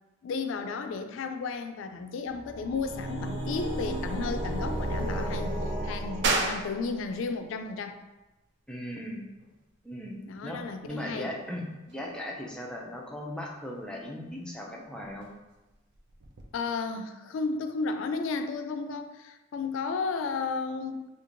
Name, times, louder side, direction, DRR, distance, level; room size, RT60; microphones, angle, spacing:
voice 1, 0.2-8.0 10.3-11.3 16.5-21.1, left 4 dB, 70° left, 7 dB, 0.3 m, -33 dB
sound 1, 2.3-7.0, right 1 dB, 35° right, 0.8 m, -33 dB
sound 2, 6.2-16.5, right 3 dB, 60° right, 0.5 m, -38 dB
voice 2, 8.7-9.3 9.8-10.6 10.9-15.3, left 1 dB, 5° left, -2 dB, 0.4 m, -38 dB
4.5 x 2.5 x 2.5 m, 1.1 s
head